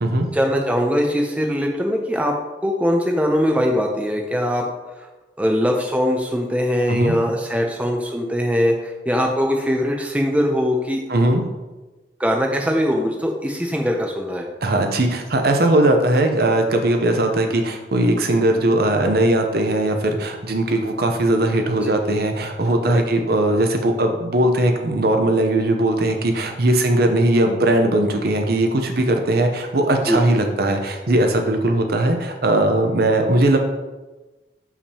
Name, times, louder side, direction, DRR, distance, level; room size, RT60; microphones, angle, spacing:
voice 1, 0.3-2.3 2.6-4.6 5.4-11.0 12.2-14.5 21.8-21.9 22.9-23.0 30.1-30.2, equal, 5° right, 1 dB, 0.5 m, -21 dB
voice 2, 11.1-11.4 14.6-33.6, right 1 dB, 55° right, 4 dB, 0.7 m, -19 dB
6.4 x 5.8 x 2.8 m, 1.1 s
head